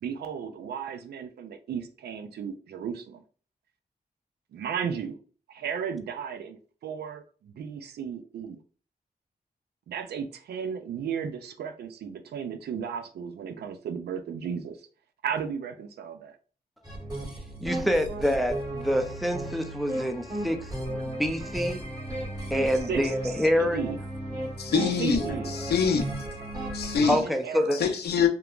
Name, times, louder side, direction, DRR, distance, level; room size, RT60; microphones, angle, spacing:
voice 1, 0.0-3.2 4.5-5.2 5.5-8.6 9.9-14.8 15.2-16.4 22.9-24.0 25.0-25.5 27.0-27.8, right 7 dB, 80° right, 0.4 m, -34 dB
sound 1, 16.8-27.0, right 1 dB, 25° right, 1.4 m, -34 dB
voice 2, 17.6-20.7 21.0-21.8 22.5-23.8 27.1-27.8, equal, ahead, 0.5 m, -26 dB
voice 3, 24.6-26.1 26.7-27.2 27.7-28.3, left 6 dB, 85° left, 0.5 m, -25 dB
2.8 x 2.2 x 2.3 m
cardioid pair, 50°, 16 cm